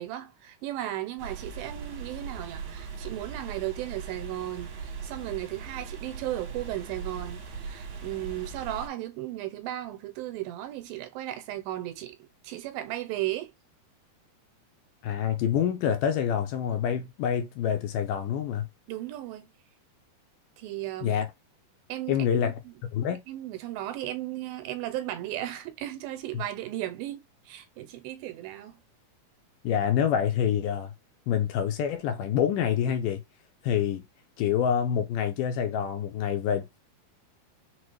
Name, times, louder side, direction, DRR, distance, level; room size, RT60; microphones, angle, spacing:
voice 1, 0.0-12.2 12.4-13.5 18.9-19.5 20.6-21.2 21.9-22.7 23.3-28.8, right 14 dB, 90° right, 2.5 m, -35 dB
sound 1, 1.2-8.9, right 5 dB, 65° right, 2.4 m, -40 dB
voice 2, 15.0-18.7 21.0-21.3 22.1-22.5 22.9-23.2 26.3-26.4 29.6-30.9 31.3-33.2 33.6-34.0 34.4-36.8, left 8 dB, 80° left, 2.0 m, -26 dB
6.0 x 2.5 x 3.1 m
omnidirectional pair, 4.2 m